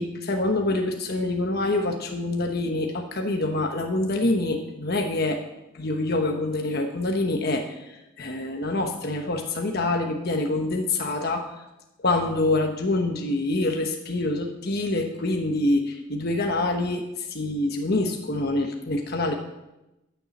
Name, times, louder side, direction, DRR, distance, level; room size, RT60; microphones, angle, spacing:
voice 1, 0.0-5.4 5.7-11.5 12.0-19.3, left 2 dB, 50° left, 3 dB, 1.1 m, -26 dB
13.5 x 7.0 x 7.2 m, 0.96 s
head